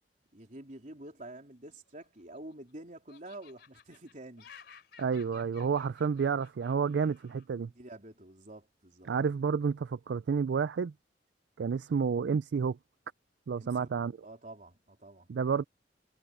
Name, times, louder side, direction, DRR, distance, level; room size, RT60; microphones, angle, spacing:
voice 1, 0.3-4.5 7.7-9.1 13.6-13.9 14.2-15.3, right 1 dB, 45° right, 3.8 m, -48 dB
Laughter, 1.9-2.7 3.1-7.5, left 7 dB, 65° left, 3.7 m, -57 dB
voice 2, 5.0-7.7 9.1-10.9 11.6-12.8 13.5-14.1 15.3-15.6, right 6 dB, 70° right, 0.4 m, -30 dB
head